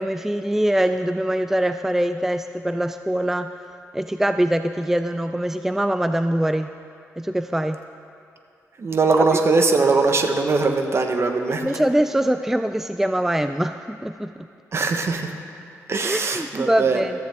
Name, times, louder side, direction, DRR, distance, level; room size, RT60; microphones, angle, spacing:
voice 1, 0.0-3.5 3.9-6.7 7.2-7.8 11.6-14.3 16.0-17.1, right 1 dB, 5° right, 9 dB, 0.4 m, -23 dB
voice 2, 8.8-11.7 14.7-15.3 15.9-17.0, right 3 dB, 45° right, 5 dB, 1.2 m, -21 dB
14.0 x 13.5 x 3.6 m, 2.5 s
cardioid pair, 70°, 6 cm